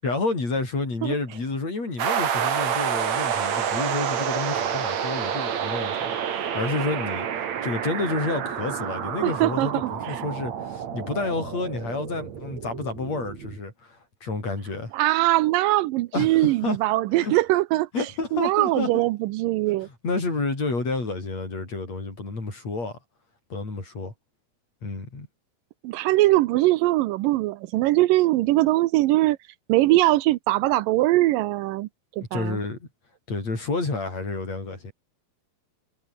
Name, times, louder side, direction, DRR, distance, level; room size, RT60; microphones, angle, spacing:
voice 1, 0.0-7.3 7.6-14.9 16.1-16.8 17.1-17.3 17.9-18.9 19.8-23.0 23.5-24.1 24.8-25.3 32.2-32.9 33.3-34.9, left 3 dB, 50° left, 8.4 m, -30 dB
sound 1, 2.0-13.6, right 8 dB, 55° right, 3.1 m, -29 dB
voice 2, 9.2-10.2 14.9-17.9 18.3-19.9 25.8-29.4 29.7-31.9 32.2-32.6, right 17 dB, 80° right, 2.3 m, -21 dB
omnidirectional pair, 4.0 m